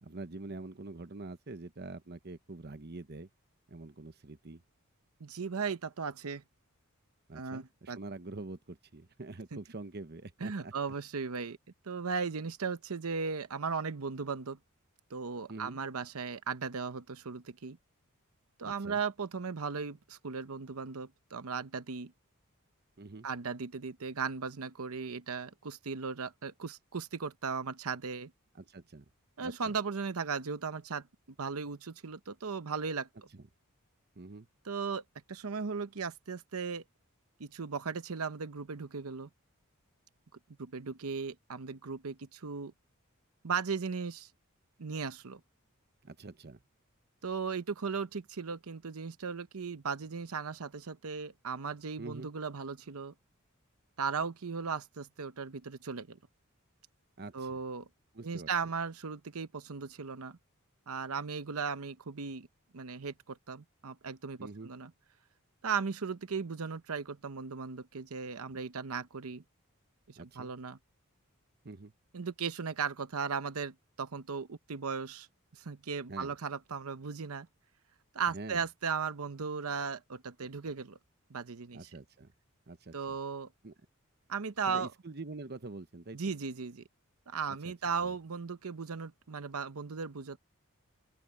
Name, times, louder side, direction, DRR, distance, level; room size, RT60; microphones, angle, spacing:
voice 1, 0.0-3.3 3.7-4.6 7.3-10.7 15.5-15.8 18.6-19.0 23.0-23.3 28.5-29.1 29.4-29.7 33.3-33.4 34.2-34.5 46.0-46.6 52.0-52.3 57.2-57.6 58.1-58.5 64.4-64.7 70.2-70.5 71.6-71.9 76.1-76.3 78.3-78.6 81.7-82.3 82.7-83.2 83.6-83.7 84.7-86.3 87.6-87.7 88.0-88.2, right 2 dB, 50° right, 1.0 m, -45 dB
voice 2, 5.2-6.4 7.3-8.0 10.4-11.6 11.8-14.6 15.1-17.8 18.6-22.1 23.2-28.3 29.4-31.1 31.4-33.1 34.6-35.0 35.3-36.8 37.4-39.3 40.6-42.7 43.4-44.3 44.8-45.4 47.2-53.1 54.0-56.2 57.3-57.9 58.2-60.4 60.9-62.5 62.7-64.9 65.6-69.4 70.1-70.8 72.1-75.3 75.5-77.5 78.1-81.0 81.3-81.9 82.9-83.5 84.3-84.9 86.1-86.8 87.3-90.4, right 5 dB, 85° right, 0.8 m, -37 dB
open air
head